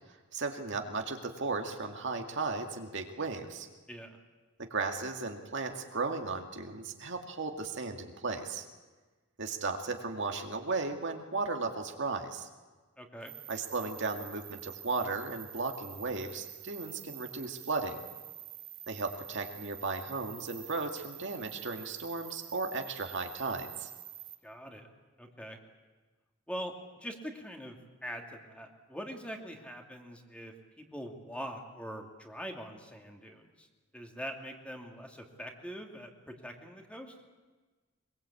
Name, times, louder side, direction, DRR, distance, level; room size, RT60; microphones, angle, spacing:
voice 1, 0.3-3.7 4.6-8.6 9.4-12.5 13.5-18.0 18.9-23.9, right 3 dB, 60° right, 4 dB, 2.2 m, -35 dB
voice 2, 13.0-13.3 24.4-24.9 25.2-25.6 26.5-26.7 27.0-27.8 28.0-33.7 33.9-37.1, equal, 5° left, 2 dB, 2.7 m, -43 dB
sound 1, 13.2-24.3, right 13 dB, 45° right, 2.6 m, -47 dB
23.5 x 22.0 x 8.5 m, 1.3 s
head